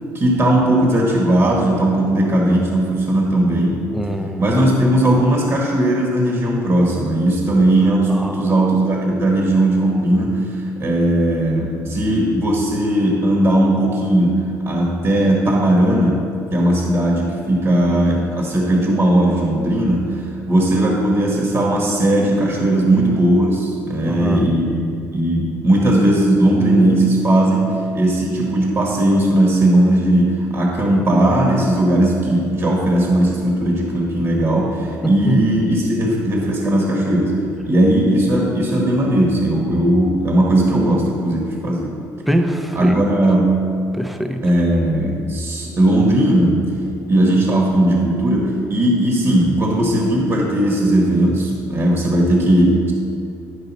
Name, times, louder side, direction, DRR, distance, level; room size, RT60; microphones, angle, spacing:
voice 1, 0.1-3.9 4.4-42.0 42.7-43.7 44.4-46.7 47.1-52.9, right 1 dB, 40° right, -1 dB, 1.3 m, -17 dB
voice 2, 3.9-4.4 8.2-8.5 24.1-24.6 35.0-35.5 42.3-43.0 43.9-44.4, equal, ahead, 5 dB, 0.7 m, -23 dB
10.5 x 5.3 x 4.1 m, 2.6 s
cardioid pair, 105°, 7 cm